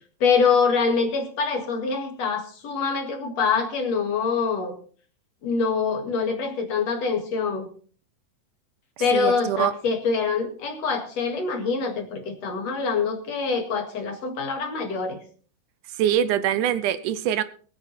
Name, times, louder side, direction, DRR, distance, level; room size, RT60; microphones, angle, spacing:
voice 1, 0.2-4.7 5.4-7.7 9.0-15.2, left 5 dB, 55° left, 2.8 m, -25 dB
voice 2, 9.1-9.7 16.0-17.4, right 10 dB, 75° right, 2.1 m, -23 dB
20.5 x 8.9 x 4.2 m
omnidirectional pair, 3.8 m